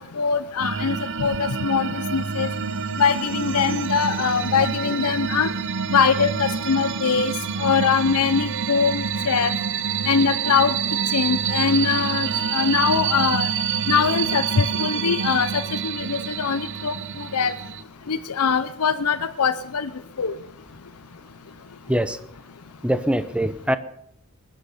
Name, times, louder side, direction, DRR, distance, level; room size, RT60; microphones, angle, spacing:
voice 1, 0.2-2.5 3.0-5.5 5.9-7.3 7.6-9.5 10.1-10.7 11.1-13.5 13.9-16.9 17.3-17.5 18.1-19.9 20.2-20.3, left 6 dB, 80° left, 12 dB, 0.7 m, -22 dB
sound 1, 0.6-17.8, right 7 dB, 55° right, 0.7 m, -27 dB
voice 2, 22.8-23.8, right 1 dB, 5° right, 12 dB, 0.7 m, -22 dB
20.5 x 10.0 x 5.6 m, 0.69 s
head